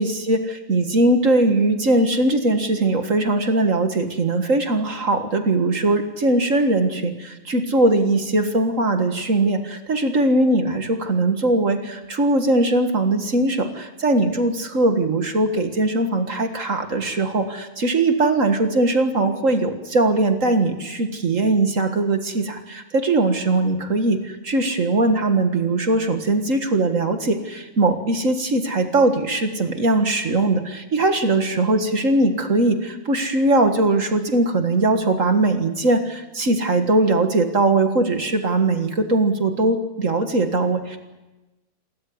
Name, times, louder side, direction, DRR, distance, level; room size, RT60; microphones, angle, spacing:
voice 1, 0.0-41.0, right 2 dB, 35° right, 6 dB, 1.5 m, -20 dB
28.0 x 13.5 x 9.6 m, 1.1 s
omnidirectional pair, 3.3 m